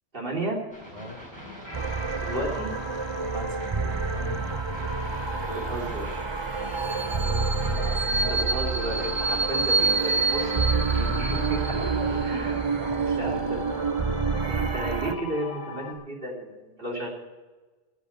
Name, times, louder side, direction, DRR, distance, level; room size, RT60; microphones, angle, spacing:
voice 1, 0.1-0.6 2.2-2.8 5.3-6.3 8.1-11.7 12.2-12.6 13.2-13.7 14.5-17.1, right 1 dB, 55° right, -1 dB, 3.3 m, -33 dB
sound 1, 0.7-12.6, equal, 15° right, 4.8 m, -45 dB
sound 2, 1.6-15.9, left 1 dB, 50° left, 3.6 m, -40 dB
sound 3, 1.7-15.1, right 4 dB, 35° right, 0.5 m, -27 dB
voice 2, 3.2-4.5 6.5-8.6 11.5-13.5, left 1 dB, 35° left, 0 dB, 2.1 m, -40 dB
16.0 x 7.3 x 7.8 m, 1.2 s
omnidirectional pair, 1.1 m